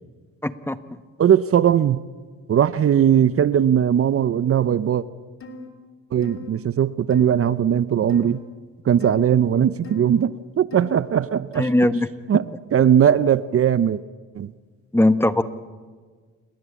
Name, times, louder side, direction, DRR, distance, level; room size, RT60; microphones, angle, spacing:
voice 1, 0.4-1.0 11.5-12.1 14.9-15.4, left 1 dB, 10° left, 12 dB, 1.2 m, -20 dB
voice 2, 1.2-2.0 2.5-5.0 6.1-8.4 8.9-11.7 12.3-12.4 12.7-14.0 14.4-14.5, right 9 dB, 50° right, 16 dB, 0.8 m, -19 dB
sound 1, 5.4-5.7 6.2-6.5 7.1-7.3 8.1-8.4 9.0-9.3 9.8-10.1 10.7-11.0 11.5-11.8, left 1 dB, 45° left, 3.6 m, -38 dB
28.0 x 21.5 x 8.5 m, 1.5 s
cardioid pair, 90°, 30 cm